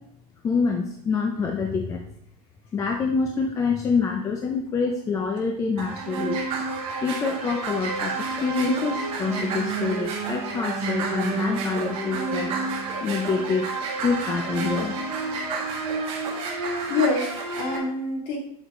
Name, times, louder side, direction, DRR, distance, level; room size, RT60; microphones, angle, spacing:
voice 1, 0.4-2.0 2.7-6.4 7.0-12.5 13.0-13.7 14.0-15.0, left 5 dB, 15° left, 3 dB, 0.5 m, -26 dB
sound 1, 5.8-17.8, right 3 dB, 30° right, 1.8 m, -29 dB
voice 2, 16.5-18.4, left 3 dB, 40° left, -1 dB, 2.2 m, -27 dB
8.1 x 6.4 x 3.7 m, 0.70 s
supercardioid pair, 165°, 19 cm